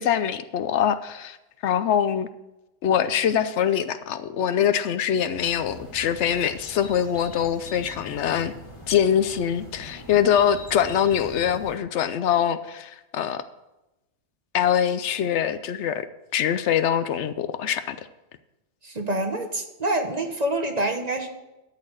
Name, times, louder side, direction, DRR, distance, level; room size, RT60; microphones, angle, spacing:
voice 1, 0.0-1.4 1.6-2.3 2.8-8.5 8.9-13.4 14.5-16.1 16.3-18.1, left 9 dB, 75° left, 12 dB, 0.8 m, -23 dB
sound 1, 5.4-11.8, equal, 25° left, 1.8 m, -43 dB
voice 2, 18.8-21.3, right 1 dB, 35° right, 5 dB, 1.0 m, -26 dB
12.5 x 4.2 x 7.6 m, 1.0 s
omnidirectional pair, 1.2 m